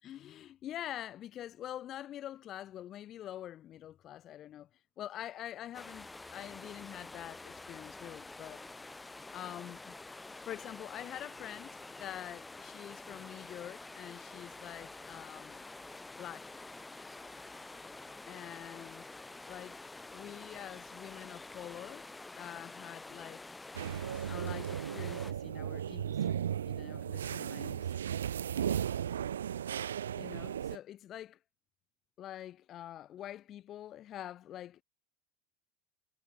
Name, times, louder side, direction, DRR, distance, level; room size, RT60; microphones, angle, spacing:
voice 1, 0.0-4.7 5.0-8.6 9.3-9.9 10.2-15.7 16.2-16.6 18.3-19.1 19.5-19.8 20.1-22.1 22.3-23.5 24.2-28.0 30.2-31.4 32.2-34.8, left 12 dB, 40° left, 6.1 m, -46 dB
sound 1, 5.7-25.3, left 2 dB, 10° left, 7.6 m, -48 dB
sound 2, 23.7-30.8, right 9 dB, 75° right, 1.7 m, -35 dB
figure-of-eight pair, 75°, 0 cm